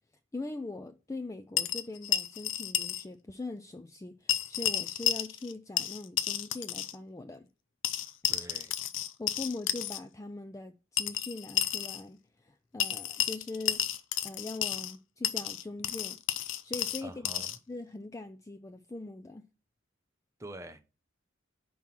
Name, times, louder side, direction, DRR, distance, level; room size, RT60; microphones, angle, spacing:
voice 1, 0.3-7.5 9.2-13.8 14.2-16.2 16.6-19.4, left 2 dB, 15° left, 0.3 m, -41 dB
sound 1, 1.6-3.0 3.3-3.4 4.3-5.5 5.8-6.9 7.8-10.0 11.0-12.0 12.8-14.9 15.2-17.6, left 11 dB, 85° left, 0.5 m, -32 dB
voice 2, 8.3-8.7 17.0-17.6 20.4-20.8, right 1 dB, 15° right, 0.7 m, -45 dB
5.5 x 4.3 x 6.0 m
head